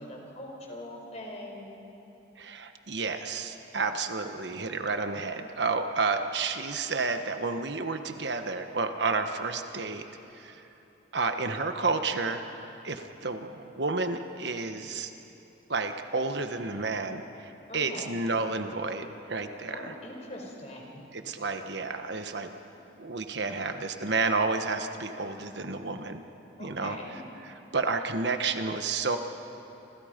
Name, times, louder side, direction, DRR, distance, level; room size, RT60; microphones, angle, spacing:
voice 1, 0.0-1.7 17.7-18.1 19.7-21.0 26.6-27.2, left 1 dB, 35° left, 0 dB, 4.5 m, -42 dB
voice 2, 2.4-10.0 10.3-10.6 11.1-12.4 12.8-15.1 15.7-19.9 21.1-22.5 23.0-26.2 26.6-27.0 27.4-29.2, right 3 dB, 65° right, 7 dB, 1.3 m, -31 dB
28.5 x 26.5 x 5.2 m, 3.0 s
head